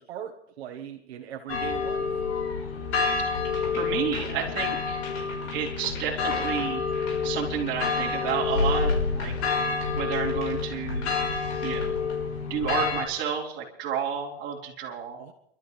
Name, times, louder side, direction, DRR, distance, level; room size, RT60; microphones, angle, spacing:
voice 1, 0.0-2.1 15.1-15.3, right 10 dB, 70° right, 4 dB, 1.5 m, -39 dB
sound 1, 1.5-13.0, left 4 dB, 80° left, 5.6 m, -28 dB
sound 2, 3.3-12.2, left 5 dB, 45° left, 4.7 m, -43 dB
voice 2, 3.7-5.0 5.5-6.8 7.2-9.3 9.9-11.1 11.6-12.0 12.5-15.2, right 8 dB, 35° right, -3 dB, 4.3 m, -31 dB
29.0 x 13.0 x 3.3 m, 0.77 s
supercardioid pair, 145°, 33 cm